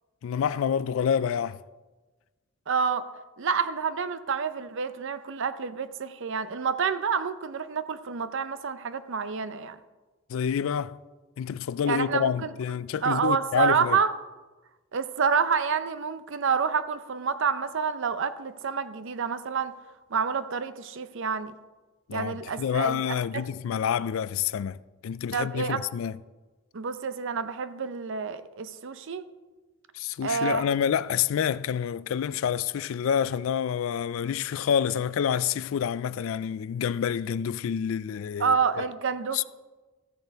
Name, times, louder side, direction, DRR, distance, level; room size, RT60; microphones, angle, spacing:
voice 1, 0.2-1.6 10.3-11.0 11.4-14.0 22.1-24.8 25.0-26.2 29.9-38.8 39.3-39.4, left 8 dB, 70° left, 0.3 m, -28 dB
voice 2, 2.7-3.0 3.4-9.8 11.8-12.5 13.0-14.1 14.9-19.7 20.1-21.5 22.1-23.5 25.3-25.8 26.7-29.2 30.2-30.7 38.4-39.4, right 6 dB, 65° right, 0.6 m, -28 dB
13.5 x 6.7 x 4.6 m
head